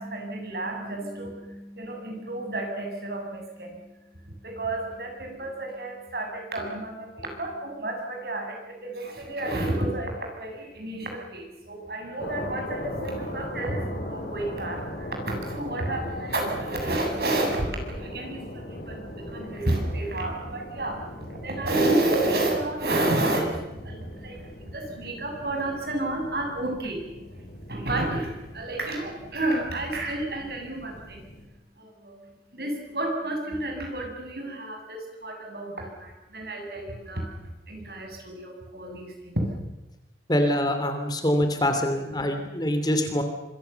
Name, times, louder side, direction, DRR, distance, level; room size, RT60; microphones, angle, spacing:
voice 1, 0.0-31.3 31.8-37.3 37.7-39.5, right 1 dB, 60° right, 2 dB, 7.4 m, -31 dB
sound 1, 12.2-31.4, left 1 dB, 60° left, 5.8 m, -40 dB
voice 2, 40.3-43.2, left 1 dB, 25° left, 6 dB, 2.8 m, -24 dB
26.0 x 23.5 x 7.0 m, 0.96 s
head